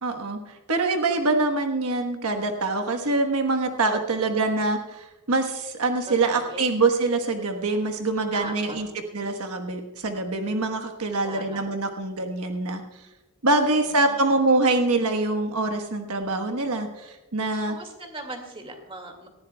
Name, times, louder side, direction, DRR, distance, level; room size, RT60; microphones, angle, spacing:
voice 1, 0.0-8.9 9.1-12.8 13.4-17.7, right 2 dB, 85° right, 6 dB, 1.2 m, -24 dB
voice 2, 3.9-4.5 6.1-6.7 8.3-8.9 11.2-11.6 13.6-14.3 17.7-19.3, right 2 dB, 25° right, 4 dB, 2.1 m, -40 dB
19.0 x 14.5 x 2.3 m, 1.0 s
head